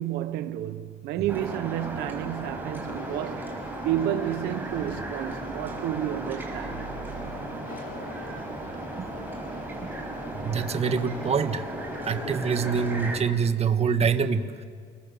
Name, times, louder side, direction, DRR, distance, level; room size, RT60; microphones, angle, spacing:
voice 1, 0.0-3.5 3.8-6.8, right 12 dB, 90° right, 1.0 m, -31 dB
sound 1, 1.3-13.2, right 2 dB, 10° right, 5.6 m, -36 dB
Conversation, 2.9-12.9, left 6 dB, 50° left, 2.2 m, -44 dB
voice 2, 10.3-11.6 12.0-14.6, right 6 dB, 40° right, 1.6 m, -25 dB
29.5 x 22.0 x 7.1 m
cardioid pair, 110°, 17 cm